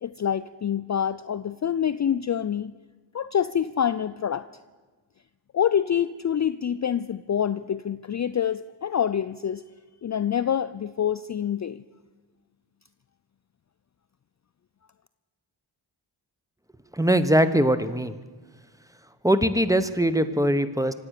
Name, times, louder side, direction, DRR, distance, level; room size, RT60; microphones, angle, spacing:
voice 1, 0.0-2.7 3.1-4.5 5.5-9.6 10.0-11.8, left 9 dB, 35° left, 14 dB, 0.5 m, -26 dB
voice 2, 16.9-18.1 19.2-20.9, right 1 dB, 5° right, 12 dB, 1.1 m, -21 dB
25.5 x 8.7 x 6.6 m, 1.3 s
cardioid pair, 40°, 48 cm